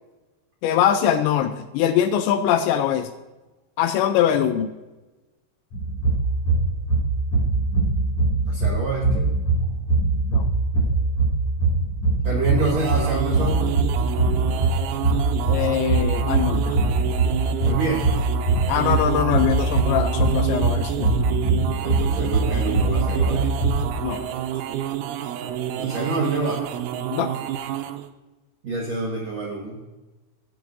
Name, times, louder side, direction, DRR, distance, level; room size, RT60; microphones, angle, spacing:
voice 1, 0.6-3.1 3.8-4.7 10.3-10.4 15.5-16.7 18.7-21.1 24.0-24.2 27.1-27.3, left 10 dB, 85° left, 9 dB, 2.7 m, -22 dB
sound 1, 5.7-23.9, right 3 dB, 45° left, 3.1 m, -22 dB
voice 2, 8.5-9.3 12.2-13.7 17.6-18.1 21.8-23.6 25.8-26.6 28.6-29.8, right 3 dB, 70° right, -3 dB, 1.6 m, -27 dB
sound 2, 12.3-28.1, right 11 dB, 90° right, 3.1 m, -29 dB
16.0 x 7.7 x 2.6 m, 1.1 s
omnidirectional pair, 5.5 m